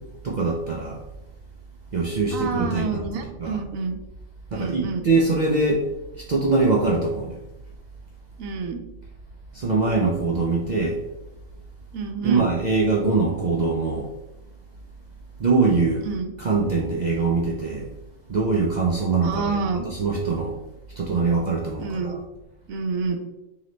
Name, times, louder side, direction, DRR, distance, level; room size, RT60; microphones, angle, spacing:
voice 1, 0.2-1.0 1.9-3.1 3.4-3.6 4.5-5.8 6.2-7.4 9.5-11.0 12.2-14.1 15.4-16.1 16.4-17.9 18.3-20.5 21.0-22.2, right 3 dB, 60° right, -2 dB, 0.4 m, -23 dB
voice 2, 2.3-4.0 4.5-5.1 8.4-8.8 11.9-12.5 16.0-16.3 19.2-19.8 21.8-22.2 22.7-23.2, right 4 dB, 85° right, 4 dB, 1.0 m, -28 dB
3.2 x 3.0 x 3.8 m, 0.95 s
omnidirectional pair, 1.4 m